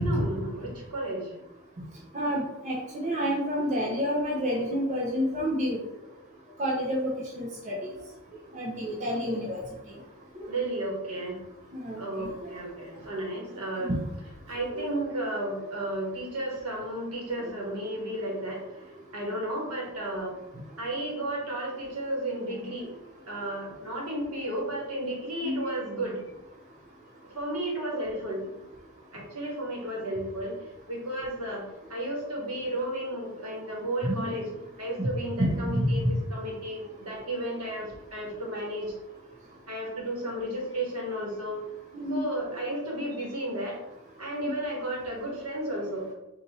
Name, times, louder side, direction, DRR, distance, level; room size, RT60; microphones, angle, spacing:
voice 1, 0.0-1.4 10.5-11.4 12.0-13.9 14.5-20.3 20.8-22.9 23.3-26.2 27.3-28.6 29.1-30.6 30.9-31.6 31.9-34.5 34.8-38.9 39.7-41.6 42.1-43.8 44.2-46.0, right 1 dB, 75° right, -2 dB, 1.3 m, -33 dB
voice 2, 2.1-5.8 6.6-7.8 8.5-9.6 10.4-10.5 11.7-12.5 13.8-14.0 14.7-14.8 25.4-25.6 34.0-34.4 35.0-35.1 35.4-35.9 41.9-42.2 44.4-44.5, equal, 35° right, -3 dB, 0.6 m, -29 dB
4.0 x 2.5 x 4.1 m, 0.95 s
head